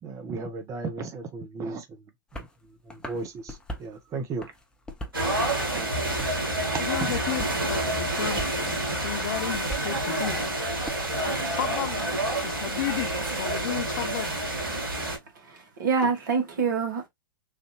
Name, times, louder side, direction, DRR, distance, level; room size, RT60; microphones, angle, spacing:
voice 1, 0.0-2.0 2.3-4.5 5.8-6.5 7.0-7.2, right 4 dB, 25° right, 0.8 m, -36 dB
sound 1, 2.3-2.5 2.9-3.9 4.3-5.2 5.6-6.5 6.8-7.6 7.9-8.6 8.9-10.9, equal, 5° left, 0.7 m, -40 dB
sound 2, 5.1-15.2, right 1 dB, 80° right, 1.7 m, -28 dB
voice 2, 6.8-10.5 11.1-14.4 15.0-15.1 16.0-16.1, left 12 dB, 50° left, 0.5 m, -34 dB
voice 3, 15.5-17.1, right 5 dB, 60° right, 1.5 m, -26 dB
3.3 x 2.6 x 3.0 m
figure-of-eight pair, 100°, 12 cm